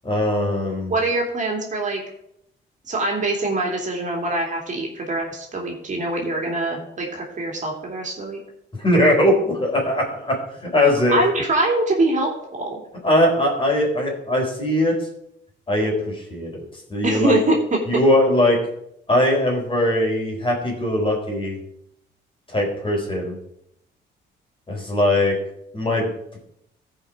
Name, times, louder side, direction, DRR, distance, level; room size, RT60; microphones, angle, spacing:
voice 1, 0.0-0.9 8.8-10.4 10.7-11.2 13.0-15.0 15.7-16.6 16.9-17.4 17.9-18.6 19.1-21.6 22.5-23.4 24.7-25.4 25.7-26.1, left 1 dB, 25° left, 0 dB, 4.0 m, -20 dB
voice 2, 0.9-2.0 2.8-8.4 11.1-12.8 17.0-17.6, right 2 dB, 40° right, -1 dB, 2.7 m, -23 dB
14.5 x 5.3 x 5.0 m, 0.77 s
cardioid pair, 90°, 20 cm